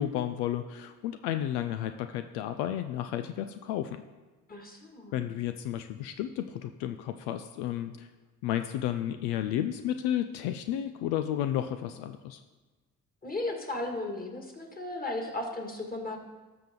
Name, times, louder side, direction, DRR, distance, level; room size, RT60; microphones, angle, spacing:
voice 1, 0.0-4.0 5.1-8.1 8.4-12.4, left 11 dB, 80° left, 8 dB, 0.5 m, -32 dB
voice 2, 4.5-5.2 13.2-16.2, left 2 dB, 20° left, 2 dB, 2.3 m, -35 dB
13.0 x 5.9 x 3.8 m, 1.3 s
hypercardioid pair, 50°, 39 cm